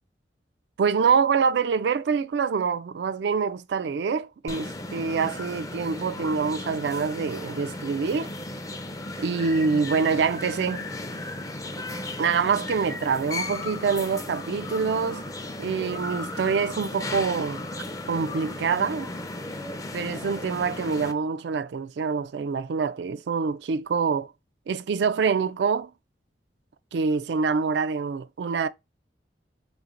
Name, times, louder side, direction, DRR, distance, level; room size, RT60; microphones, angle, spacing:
voice 1, 0.8-8.3 9.2-10.9 12.2-15.2 15.6-17.6 18.1-19.1 19.9-24.3 24.7-25.9 26.9-28.7, right 5 dB, 75° right, 0.4 m, -25 dB
sound 1, 4.5-21.1, left 2 dB, 20° left, 0.4 m, -35 dB
3.2 x 3.1 x 3.7 m
head